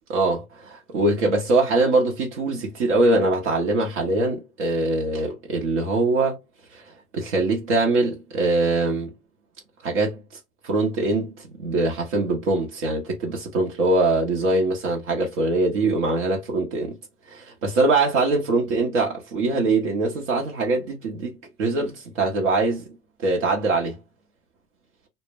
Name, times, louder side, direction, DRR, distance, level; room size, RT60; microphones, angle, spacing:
voice 1, 0.1-6.4 6.7-6.8 7.1-9.1 9.8-10.2 10.6-16.9 17.3-22.8 23.2-24.0, right 2 dB, 80° right, 0.9 m, -23 dB
2.1 x 2.1 x 3.4 m
hypercardioid pair, 95°, 35 cm